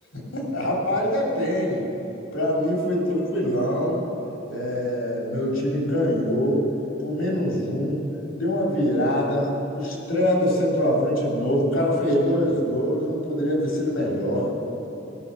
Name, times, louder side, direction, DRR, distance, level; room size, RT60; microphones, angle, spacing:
voice 1, 0.1-1.9 2.3-4.0 4.5-6.6 7.0-8.0 8.4-14.5, equal, 90° left, -3 dB, 3.0 m, -24 dB
18.0 x 6.3 x 6.7 m, 2.9 s
head